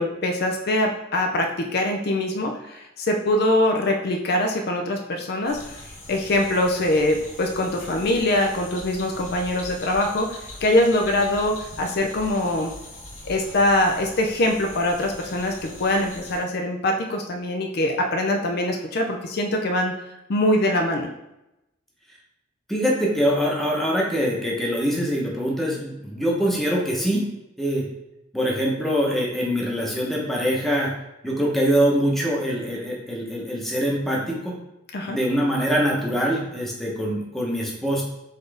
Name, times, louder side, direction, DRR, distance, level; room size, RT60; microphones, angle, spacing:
voice 1, 0.0-5.8 6.1-10.3 10.6-12.7 13.2-19.9 20.3-21.1 34.9-35.2, left 1 dB, 50° left, 3 dB, 0.5 m, -23 dB
sound 1, 5.5-16.4, left 1 dB, 35° left, 1.1 m, -41 dB
voice 2, 22.7-27.2 27.6-27.8 28.3-30.9 31.2-34.5 35.1-38.0, equal, ahead, -3 dB, 0.9 m, -23 dB
4.1 x 3.8 x 3.4 m, 0.91 s
head